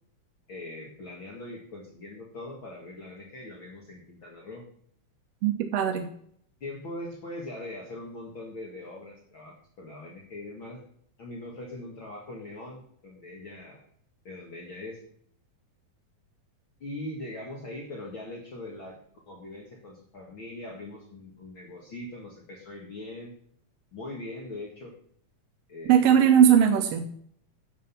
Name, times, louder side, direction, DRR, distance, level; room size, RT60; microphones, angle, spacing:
voice 1, 0.5-4.6 6.6-10.8 11.2-13.8 14.2-15.0 16.8-19.0 19.3-23.3 23.9-24.9 25.7-26.4, left 2 dB, 45° left, -2 dB, 2.3 m, -41 dB
voice 2, 5.4-6.1 25.9-27.2, right 8 dB, 70° right, 5 dB, 1.7 m, -20 dB
11.0 x 8.0 x 5.8 m, 0.65 s
omnidirectional pair, 3.5 m